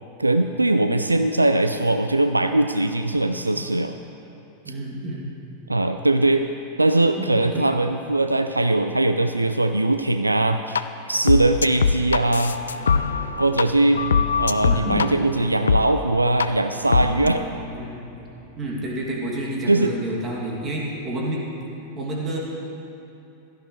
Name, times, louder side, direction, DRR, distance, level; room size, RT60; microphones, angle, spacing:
voice 1, 0.2-3.9 5.7-6.4 6.8-12.6 13.4-14.0 14.4-17.5 19.7-19.9, right 2 dB, 85° right, 8 dB, 0.4 m, -21 dB
voice 2, 4.6-5.3 7.2-7.7 14.6-15.1 17.5-18.1 18.6-21.4 22.0-22.4, right 1 dB, 25° right, -3 dB, 2.6 m, -29 dB
sound 1, 10.7-10.8 11.3-13.6 13.9-15.1 15.7-15.8 16.4-16.5 16.9-17.3, left 6 dB, 70° left, 0.4 m, -21 dB
sound 2, 12.6-21.0, equal, 45° right, 2.0 m, -42 dB
16.5 x 13.0 x 3.3 m, 2.9 s
figure-of-eight pair, 90°, 0 cm